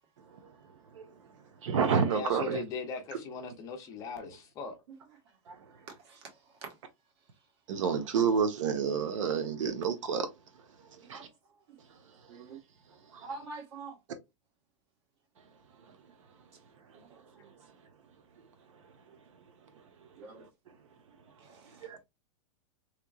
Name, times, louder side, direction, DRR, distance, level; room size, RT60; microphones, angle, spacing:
voice 1, 0.9-1.2 1.6-2.6 3.1-3.2 5.5-5.7 7.7-10.3 10.9-11.3 13.1-13.2 15.9-16.0 18.7-18.8 19.1-19.2 20.3-20.5 21.8-22.0, right 6 dB, 75° right, 1.0 m, -30 dB
voice 2, 2.0-4.8, left 4 dB, 20° left, 0.5 m, -39 dB
voice 3, 13.2-13.9 16.9-17.5 20.2-20.4 21.4-21.9, right 4 dB, 55° right, 1.5 m, -45 dB
3.4 x 3.0 x 2.3 m
supercardioid pair, 175°, 17 cm